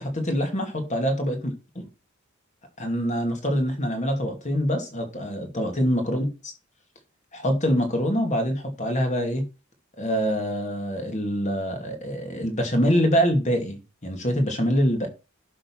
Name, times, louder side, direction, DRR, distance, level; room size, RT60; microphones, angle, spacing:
voice 1, 0.0-1.9 2.8-6.5 7.3-9.4 10.0-15.1, equal, 35° left, 2.5 m, -25 dB
11.0 x 3.7 x 6.1 m
head